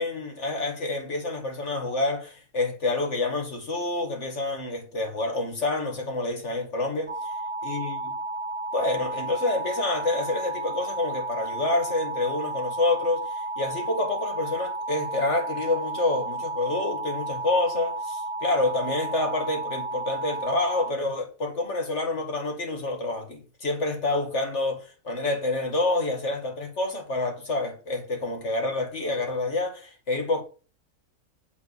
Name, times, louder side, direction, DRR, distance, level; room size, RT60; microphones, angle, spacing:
voice 1, 0.0-7.3 7.6-8.1 8.7-30.4, left 2 dB, 50° left, 2.3 m, -28 dB
sound 1, 7.1-20.9, right 2 dB, 10° left, 2.7 m, -32 dB
8.9 x 3.8 x 6.8 m
omnidirectional pair, 1.5 m